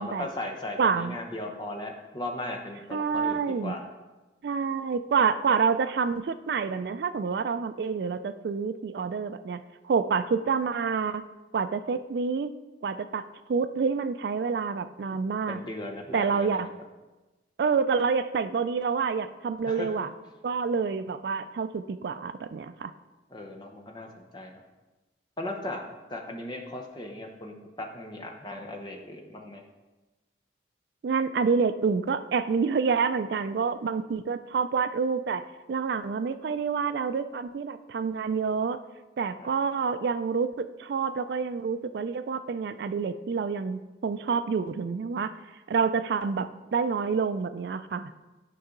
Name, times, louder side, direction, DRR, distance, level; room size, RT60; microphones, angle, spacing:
voice 1, 0.0-3.8 15.5-16.6 19.6-20.1 23.3-24.6 25.4-25.8 26.1-29.6 39.4-39.5, left 1 dB, 25° left, 1 dB, 0.9 m, -37 dB
voice 2, 0.8-1.2 2.9-3.8 4.4-11.2 11.5-12.5 12.8-15.6 16.1-16.7 17.6-20.1 20.4-22.9 31.0-38.8 39.2-45.3 45.7-48.1, right 5 dB, 60° right, 11 dB, 0.3 m, -28 dB
9.8 x 5.4 x 3.8 m, 1.1 s
head